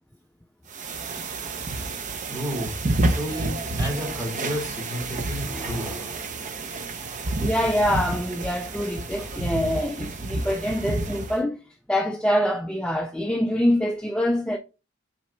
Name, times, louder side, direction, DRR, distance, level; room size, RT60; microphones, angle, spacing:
sound 1, 0.7-11.4, right 2 dB, 40° right, 0.6 m, -30 dB
voice 1, 2.3-2.8 3.1-6.3 7.0-7.1, equal, 20° right, 1.9 m, -32 dB
voice 2, 7.4-11.6 11.9-14.6, equal, 5° left, 0.4 m, -25 dB
5.7 x 4.0 x 2.2 m
head